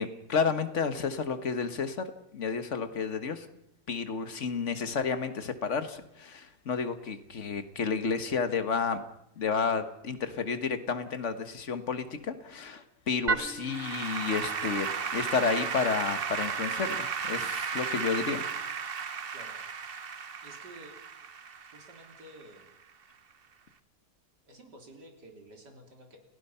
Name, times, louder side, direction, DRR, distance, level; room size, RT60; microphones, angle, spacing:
voice 1, 0.0-2.1 2.3-3.5 3.9-9.0 9.4-18.4, left 5 dB, 45° left, 9 dB, 1.7 m, -31 dB
Applause / Keyboard (musical), 13.3-22.6, right 6 dB, 40° right, 1.0 m, -34 dB
voice 2, 20.4-21.0 21.7-22.7 24.5-26.2, right 1 dB, 80° right, 3 dB, 4.1 m, -51 dB
29.5 x 16.5 x 5.7 m, 0.78 s
omnidirectional pair, 1.8 m